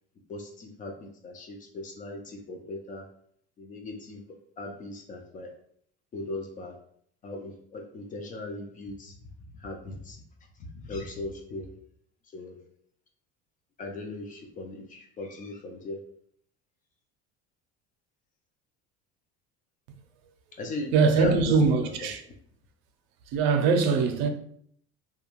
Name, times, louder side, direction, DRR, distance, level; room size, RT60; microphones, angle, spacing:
voice 1, 0.3-3.1 3.6-4.2 4.6-5.5 6.1-6.7 7.2-9.1 9.5-10.2 10.6-11.7 12.3-12.7 13.8-16.0 20.5-22.1, left 2 dB, 30° left, 0.4 m, -38 dB
voice 2, 20.9-22.2 23.3-24.3, right 4 dB, 85° right, 0.5 m, -22 dB
2.3 x 2.2 x 2.9 m
cardioid pair, 135°, 29 cm